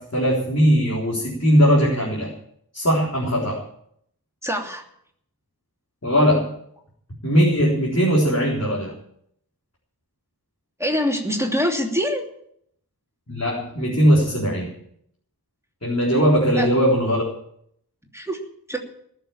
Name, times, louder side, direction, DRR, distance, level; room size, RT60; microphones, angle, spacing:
voice 1, 0.0-2.3 2.7-3.6 6.0-6.5 7.2-8.9 13.3-14.7 15.8-17.2, equal, 40° left, -5 dB, 4.1 m, -19 dB
voice 2, 4.4-4.8 10.8-12.2 16.6-16.7 18.1-18.4 18.7-18.8, equal, 5° right, 1 dB, 2.9 m, -24 dB
20.0 x 7.1 x 8.7 m, 0.69 s
wide cardioid pair, 55°, 38 cm